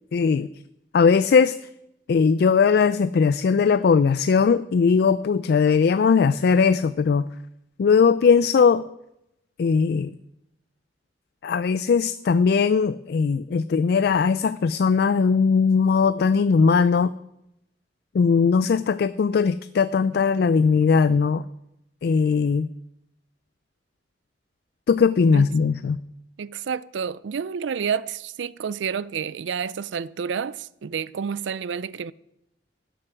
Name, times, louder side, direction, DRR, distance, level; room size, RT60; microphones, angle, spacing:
voice 1, 0.1-0.5 0.9-1.6 2.1-7.2 7.8-8.8 9.6-10.1 11.4-17.1 18.1-21.4 22.0-22.7 24.9-26.0, left 5 dB, 60° left, 0.3 m, -19 dB
voice 2, 26.4-32.1, right 6 dB, 85° right, 0.4 m, -29 dB
12.0 x 7.7 x 6.3 m
head